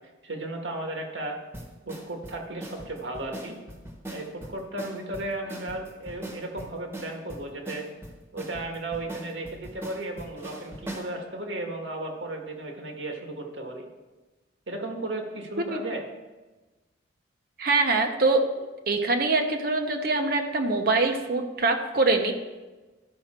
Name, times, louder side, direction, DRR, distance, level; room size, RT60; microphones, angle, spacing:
voice 1, 0.2-1.4 1.8-3.6 4.1-7.9 8.3-13.9 14.7-16.1, right 2 dB, 75° right, 2 dB, 1.7 m, -35 dB
sound 1, 1.5-11.1, right 1 dB, 10° right, 1.2 m, -41 dB
voice 2, 17.6-18.4 18.9-22.3, right 3 dB, 50° right, 4 dB, 0.9 m, -24 dB
13.5 x 5.6 x 4.4 m, 1.2 s
head